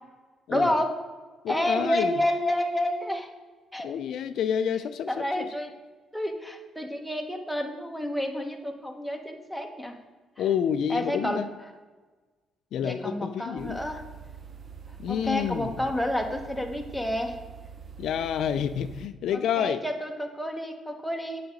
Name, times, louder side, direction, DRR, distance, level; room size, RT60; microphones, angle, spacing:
voice 1, 0.5-1.0 1.5-3.3 3.7-3.9 5.1-5.7 6.1-9.9 10.4-10.5 10.9-11.5 12.8-14.0 15.1-17.4 19.3-21.4, left 1 dB, ahead, 3 dB, 1.0 m, -29 dB
voice 2, 1.4-2.1 3.8-5.4 10.4-11.5 12.7-13.8 15.0-15.7 18.0-19.8, left 8 dB, 75° left, 11 dB, 0.4 m, -28 dB
sound 1, 13.6-19.1, right 6 dB, 45° right, 0.7 m, -45 dB
7.9 x 4.9 x 5.2 m, 1.3 s
cardioid pair, 90°, 0 cm